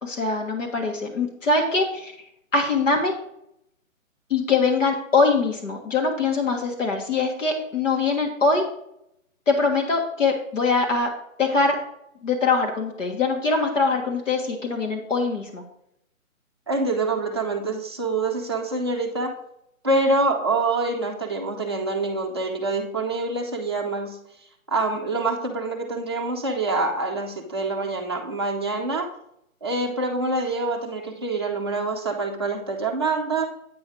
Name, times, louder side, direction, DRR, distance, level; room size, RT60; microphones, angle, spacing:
voice 1, 0.0-2.1 2.5-3.1 4.3-8.6 9.5-11.1 11.4-11.8 12.2-15.6, left 3 dB, 65° left, 1 dB, 1.7 m, -23 dB
voice 2, 16.7-19.4 19.8-24.2 24.7-29.1 29.6-33.5, right 2 dB, 20° right, -1 dB, 0.6 m, -26 dB
8.6 x 5.1 x 4.6 m, 0.75 s
hypercardioid pair, 160°, 41 cm